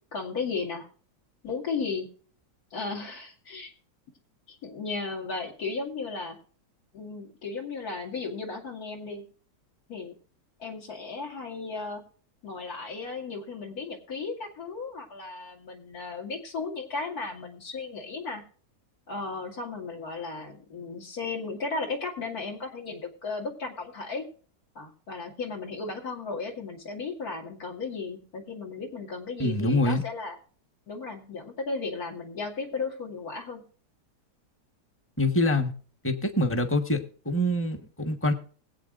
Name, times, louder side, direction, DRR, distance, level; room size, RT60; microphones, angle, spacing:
voice 1, 0.1-0.9 1.4-2.1 2.7-3.7 4.5-6.4 6.9-9.2 9.9-10.1 10.6-12.0 12.4-18.4 19.1-24.2 24.7-30.4 30.9-33.6, left 4 dB, 60° left, 1 dB, 2.8 m, -35 dB
voice 2, 29.4-30.0 35.2-35.7 36.0-38.3, left 1 dB, 10° left, 5 dB, 1.1 m, -25 dB
21.0 x 8.6 x 2.5 m, 0.42 s
omnidirectional pair, 1.8 m